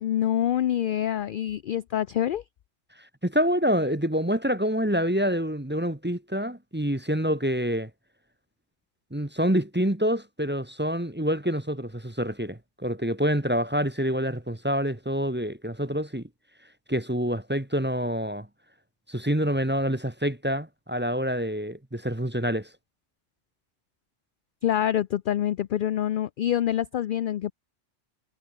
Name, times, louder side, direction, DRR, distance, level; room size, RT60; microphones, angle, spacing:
voice 1, 0.0-2.4 24.6-27.5, left 11 dB, 60° left, 0.5 m, -26 dB
voice 2, 3.2-7.9 9.1-16.2 16.9-18.5 19.1-22.7, equal, 10° right, 1.1 m, -27 dB
omnidirectional pair, 1.3 m